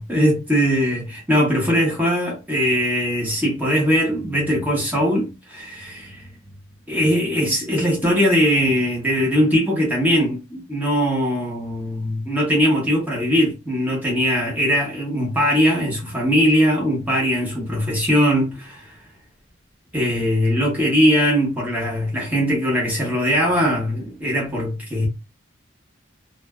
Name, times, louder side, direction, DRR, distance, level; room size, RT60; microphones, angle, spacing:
voice 1, 0.0-6.2 6.9-18.9 19.9-25.1, equal, 10° right, 0.8 m, -20 dB
2.4 x 2.2 x 2.2 m
head